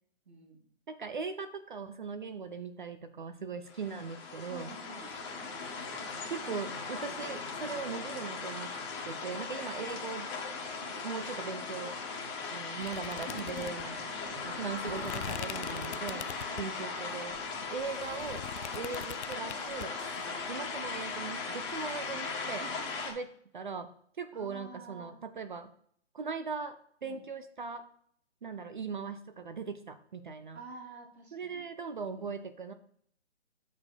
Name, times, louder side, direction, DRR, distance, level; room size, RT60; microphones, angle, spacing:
voice 1, 0.3-0.6 4.5-5.1 9.7-9.9 10.8-11.0 16.5-16.7 18.7-18.9 20.2-20.3 22.5-22.8 24.3-25.2 27.0-27.2 30.5-31.7 32.0-32.3, right 3 dB, 60° right, 0 dB, 2.1 m, -49 dB
voice 2, 0.9-4.8 6.3-8.7 9.0-10.3 11.0-12.0 12.5-14.0 14.3-17.4 17.7-18.4 18.7-20.0 20.5-22.6 23.1-23.3 23.5-23.9 24.2-25.7 26.1-26.8 27.0-27.8 28.4-30.6 31.3-32.7, right 5 dB, 45° right, 9 dB, 0.5 m, -39 dB
sound 1, 3.7-23.1, left 4 dB, 25° left, 1.5 m, -38 dB
sound 2, 12.8-16.8 17.3-19.9, left 9 dB, 70° left, 0.5 m, -43 dB
6.8 x 4.7 x 4.1 m, 0.65 s
hypercardioid pair, 155°, 35 cm